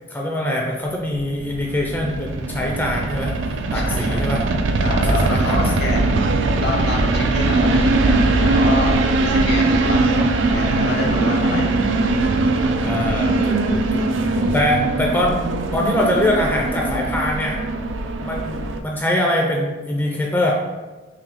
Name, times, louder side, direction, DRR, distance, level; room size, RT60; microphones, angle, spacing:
voice 1, 0.1-3.3 3.7-4.4 5.1-5.9 12.8-15.4 15.7-17.6 18.2-20.5, left 1 dB, 10° left, -1 dB, 0.3 m, -23 dB
sound 1, 1.1-18.8, right 2 dB, 75° right, 0.3 m, -20 dB
voice 2, 3.7-4.4 4.8-8.9 9.3-11.7, left 2 dB, 60° left, 0 dB, 0.7 m, -28 dB
sound 2, 10.2-15.1, equal, 50° right, 0.7 m, -36 dB
3.7 x 2.6 x 3.3 m, 1.2 s
head